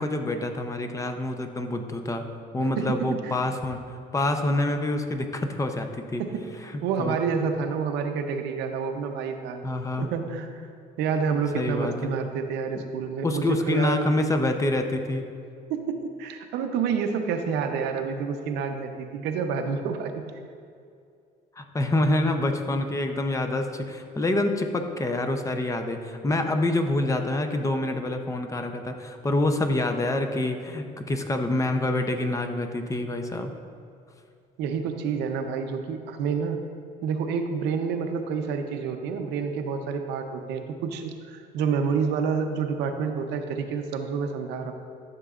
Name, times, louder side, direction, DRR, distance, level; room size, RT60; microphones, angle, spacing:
voice 1, 0.0-2.2 2.5-6.2 7.0-7.2 9.6-10.1 11.5-12.1 13.2-15.2 21.6-33.5, left 2 dB, 20° left, 6 dB, 0.6 m, -26 dB
voice 2, 2.8-3.5 6.2-6.5 6.8-9.7 10.0-10.6 11.0-14.1 15.7-20.2 34.6-36.6 37.0-44.7, right 6 dB, 90° right, 6 dB, 0.7 m, -28 dB
12.5 x 6.8 x 2.5 m, 2.4 s
cardioid pair, 110°, 17 cm